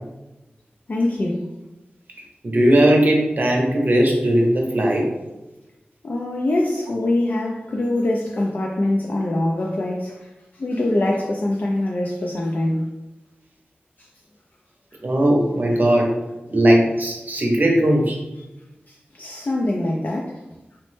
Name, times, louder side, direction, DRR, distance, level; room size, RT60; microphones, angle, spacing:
voice 1, 0.9-1.5 6.0-10.3 10.6-12.9 18.9-20.4, left 1 dB, 55° left, -1 dB, 0.3 m, -23 dB
voice 2, 2.4-5.1 10.7-10.8 15.0-16.1 16.5-18.2, right 1 dB, 55° right, -1 dB, 0.7 m, -18 dB
3.0 x 2.0 x 3.1 m, 1.0 s
wide cardioid pair, 80°, 4 cm